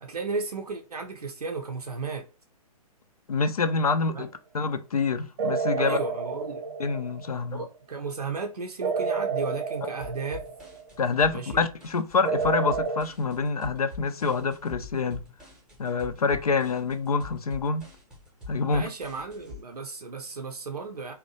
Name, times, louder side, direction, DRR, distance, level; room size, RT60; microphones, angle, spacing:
voice 1, 0.0-2.3 4.1-4.2 5.8-6.6 7.5-10.4 11.3-11.6 18.6-21.1, right 4 dB, 80° right, 0.5 m, -34 dB
voice 2, 3.3-4.3 4.5-6.0 6.8-7.6 9.8-9.9 11.0-15.2 15.8-17.9 18.5-18.9, left 4 dB, 70° left, 0.4 m, -26 dB
sound 1, 5.4-7.4 8.8-10.9 12.2-13.0, right 5 dB, 40° right, 0.6 m, -30 dB
sound 2, 10.0-19.6, left 3 dB, 5° right, 0.7 m, -45 dB
2.7 x 2.1 x 2.6 m
figure-of-eight pair, 120°, 20 cm